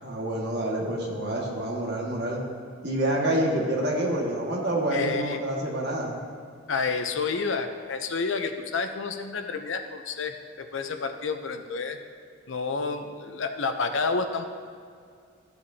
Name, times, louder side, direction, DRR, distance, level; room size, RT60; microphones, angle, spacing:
voice 1, 0.0-2.4 2.8-6.2, right 1 dB, 55° right, -3 dB, 1.8 m, -27 dB
voice 2, 4.9-5.4 6.7-12.0 12.5-14.4, left 4 dB, 70° left, 7 dB, 0.7 m, -29 dB
14.5 x 8.0 x 2.8 m, 2.2 s
head